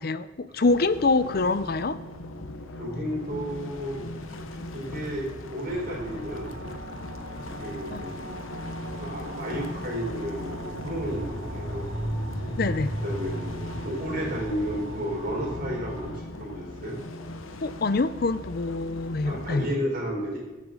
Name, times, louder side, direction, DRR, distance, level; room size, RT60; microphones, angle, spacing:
voice 1, 0.0-2.0 7.9-8.0 12.6-12.9 17.6-19.6, left 3 dB, 50° left, 13 dB, 0.5 m, -25 dB
sound 1, 0.6-19.8, left 1 dB, 85° left, 0.9 m, -39 dB
voice 2, 2.8-4.0 4.4-6.6 7.6-8.3 9.0-11.8 13.0-17.0 19.2-20.4, equal, 45° right, -2 dB, 4.2 m, -32 dB
sound 2, 5.6-16.2, right 1 dB, 80° right, 2.7 m, -37 dB
23.0 x 8.3 x 3.8 m, 1.1 s
head